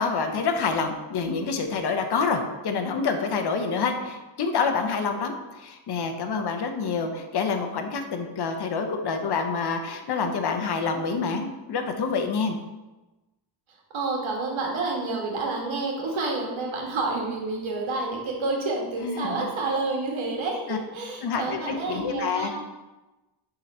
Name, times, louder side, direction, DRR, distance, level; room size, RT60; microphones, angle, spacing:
voice 1, 0.0-12.6 19.0-19.5 20.7-20.8 21.2-22.5, left 5 dB, 55° left, 6 dB, 0.9 m, -27 dB
voice 2, 13.9-22.5, right 3 dB, 80° right, 0 dB, 1.8 m, -29 dB
6.9 x 4.0 x 5.5 m, 1.1 s
wide cardioid pair, 170°, 46 cm